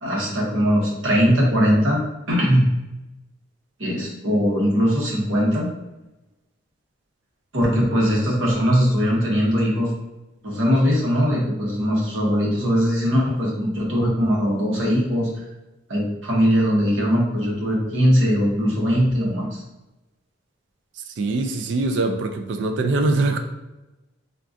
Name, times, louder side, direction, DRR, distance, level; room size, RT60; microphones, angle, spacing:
voice 1, 0.0-2.0 2.3-2.6 3.8-5.7 7.5-9.9 10.4-15.3 15.9-19.6, equal, 90° right, -4 dB, 0.9 m, -20 dB
voice 2, 21.2-23.4, right 2 dB, 65° right, 5 dB, 0.3 m, -22 dB
3.6 x 2.3 x 2.5 m, 1.0 s
head